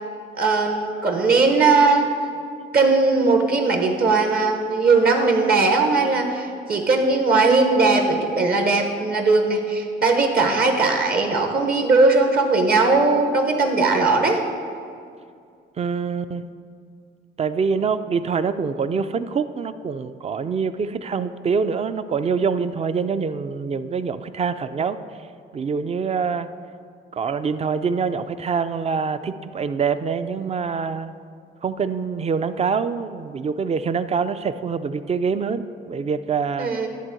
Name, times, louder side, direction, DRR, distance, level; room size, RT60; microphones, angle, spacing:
voice 1, 0.3-2.1 2.7-14.4 36.6-36.9, right 3 dB, 50° right, 4 dB, 1.2 m, -19 dB
voice 2, 15.8-16.4 17.4-25.0 25.5-26.5 27.1-31.1 31.6-36.7, right 5 dB, 30° right, 12 dB, 0.4 m, -25 dB
11.0 x 3.8 x 7.6 m, 2.3 s
cardioid pair, 90°, 20 cm